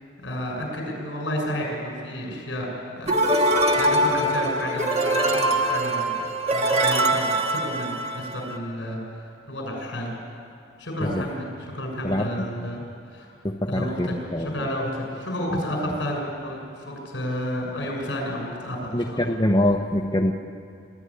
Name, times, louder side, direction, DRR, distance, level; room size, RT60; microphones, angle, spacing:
voice 1, 0.2-2.7 3.0-6.2 6.5-9.0 9.5-10.1 10.8-12.8 13.1-13.3 13.7-19.3, equal, 70° left, 0 dB, 6.7 m, -31 dB
sound 1, 3.1-8.6, right 1 dB, 35° right, 1.5 m, -23 dB
voice 2, 12.0-12.5 13.4-14.5 15.5-15.6 18.9-20.3, left 1 dB, 20° left, 2 dB, 0.8 m, -24 dB
25.0 x 13.0 x 9.9 m, 2.4 s
head